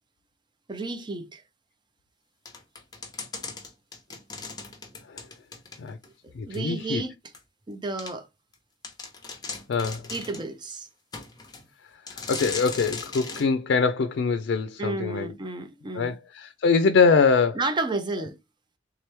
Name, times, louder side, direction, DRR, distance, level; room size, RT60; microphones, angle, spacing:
voice 1, 0.7-1.4 6.2-7.1 7.7-8.3 10.1-10.9 14.8-16.2 17.5-18.4, right 3 dB, 25° right, 0.6 m, -31 dB
sound 1, 2.5-6.1 6.5-6.6 7.3-7.4 8.0-8.1 8.5-8.6 8.8-10.5 11.1-11.6 12.1-13.5, left 4 dB, 25° left, 0.9 m, -38 dB
voice 2, 6.3-7.0 9.7-10.1 12.1-15.3 15.9-17.6, left 5 dB, 90° left, 0.4 m, -23 dB
3.6 x 3.0 x 3.3 m
head